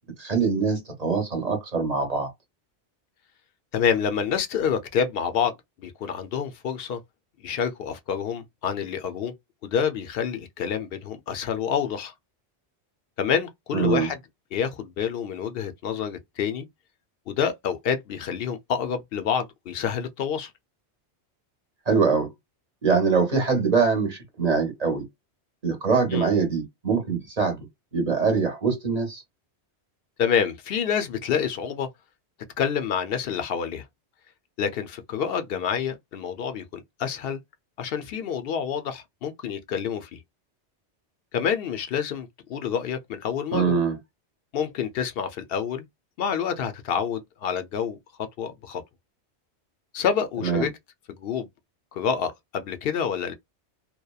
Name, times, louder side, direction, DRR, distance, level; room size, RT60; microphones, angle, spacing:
voice 1, 0.2-2.3 13.7-14.1 21.9-22.3 22.8-25.0 25.6-27.6 27.9-29.2 43.5-43.9 50.4-50.7, right 5 dB, 40° right, 0.9 m, -23 dB
voice 2, 3.7-7.0 7.4-9.3 9.6-12.1 13.2-14.2 14.5-16.7 17.3-20.5 26.1-26.3 30.2-31.9 32.6-33.9 34.6-37.4 37.8-40.2 41.3-43.8 44.5-45.8 46.2-48.0 48.4-48.8 49.9-50.7 51.1-51.5 51.9-53.3, left 7 dB, 65° left, 0.7 m, -28 dB
2.8 x 2.1 x 2.3 m
omnidirectional pair, 1.2 m